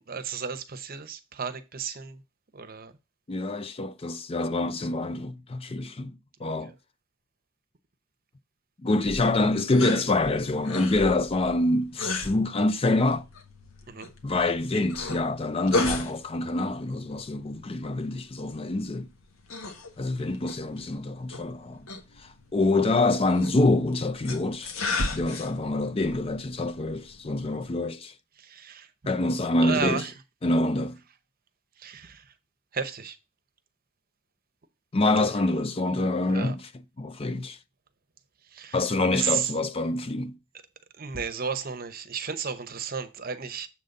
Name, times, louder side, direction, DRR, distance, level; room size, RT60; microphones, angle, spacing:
voice 1, 0.1-2.2 2.5-2.9 6.4-6.5 13.9-14.1 28.4-28.9 29.6-30.1 31.8-32.2 32.7-33.2 36.3-36.5 38.5-38.8 39.1-39.5 41.0-43.7, right 6 dB, 40° right, 0.8 m, -33 dB
voice 2, 3.3-6.1 6.4-6.7 8.8-13.2 14.2-19.1 20.0-21.8 22.5-24.7 25.1-28.1 29.1-30.0 30.4-30.9 34.9-36.7 37.0-37.6 38.7-40.3, left 2 dB, 25° left, 0.4 m, -26 dB
sound 1, 9.0-27.7, left 3 dB, 70° left, 1.5 m, -36 dB
7.4 x 3.9 x 6.5 m
head